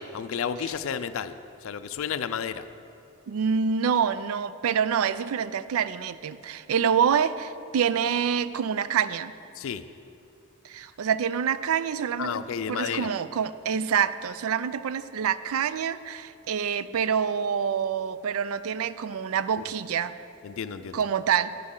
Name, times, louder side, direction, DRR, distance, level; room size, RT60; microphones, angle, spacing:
voice 1, 0.0-1.4 1.6-2.7 9.5-9.9 12.2-13.1 19.6-19.7 20.4-21.1, left 7 dB, 70° left, 12 dB, 0.4 m, -32 dB
voice 2, 3.3-9.3 10.6-20.1 20.9-21.5, right 7 dB, 80° right, 15 dB, 0.4 m, -26 dB
10.5 x 10.5 x 3.8 m, 2.6 s
head